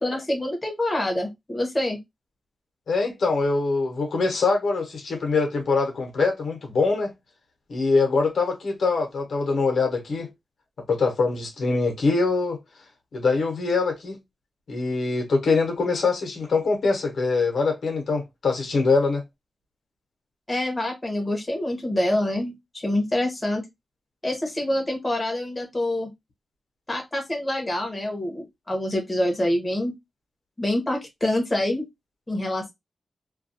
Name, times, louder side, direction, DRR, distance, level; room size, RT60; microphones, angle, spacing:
voice 1, 0.0-2.0 20.5-23.6 24.2-26.1 26.9-29.9 30.6-31.8 32.3-32.7, left 1 dB, 15° left, 0.8 m, -26 dB
voice 2, 2.9-7.1 7.7-10.3 10.9-12.6 13.1-14.2 14.7-19.2, left 4 dB, 80° left, 0.8 m, -23 dB
2.3 x 2.2 x 2.6 m
wide cardioid pair, 145°, 0 cm